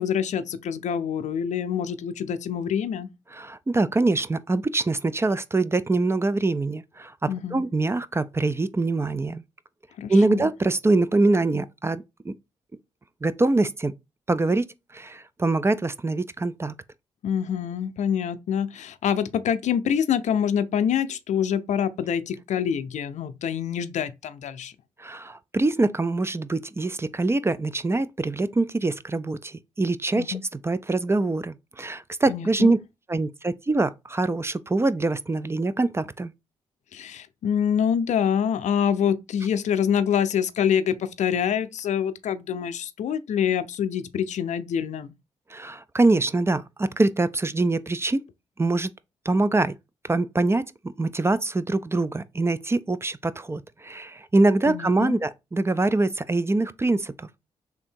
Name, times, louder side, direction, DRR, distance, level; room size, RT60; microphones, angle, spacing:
voice 1, 0.0-3.1 7.3-7.6 10.0-10.5 17.2-24.7 30.2-30.4 32.3-32.7 36.9-45.1 54.7-55.2, left 8 dB, 70° left, 0.5 m, -26 dB
voice 2, 3.3-7.1 7.5-9.4 10.1-12.3 13.2-13.9 14.3-14.6 14.9-16.7 25.0-30.4 30.6-32.8 33.1-36.3 45.5-48.2 48.6-48.9 49.3-49.7 50.0-50.6 51.0-57.4, right 2 dB, 20° right, 0.4 m, -24 dB
3.5 x 2.6 x 4.4 m
supercardioid pair, 55°, 13 cm